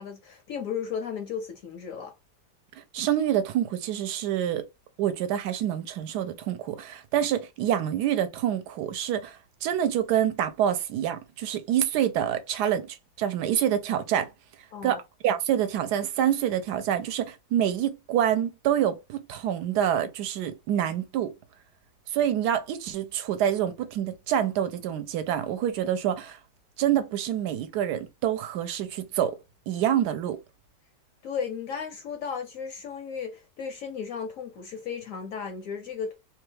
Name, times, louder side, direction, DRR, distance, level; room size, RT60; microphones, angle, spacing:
voice 1, 0.0-2.1 14.7-15.0 31.2-36.1, left 6 dB, 70° left, 0.8 m, -35 dB
voice 2, 2.8-4.6 5.0-14.3 14.8-21.3 22.1-26.4 26.8-29.3 29.7-30.4, right 10 dB, 75° right, 1.1 m, -27 dB
2.9 x 2.3 x 3.2 m
omnidirectional pair, 1.8 m